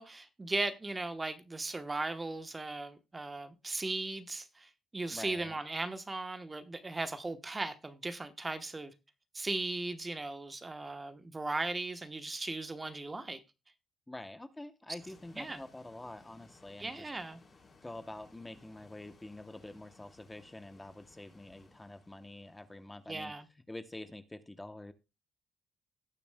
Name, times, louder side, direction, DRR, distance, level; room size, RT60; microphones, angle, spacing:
voice 1, 0.0-8.9 9.3-13.4 15.4-15.6 16.8-17.4 23.1-23.5, right 2 dB, 20° right, 1.0 m, -37 dB
voice 2, 5.1-5.6 14.1-17.1 17.8-23.3 23.7-24.9, left 1 dB, 15° left, 0.8 m, -47 dB
sound 1, 15.0-23.4, left 3 dB, 35° left, 3.9 m, -62 dB
18.5 x 6.9 x 2.2 m
cardioid pair, 90°, 0 cm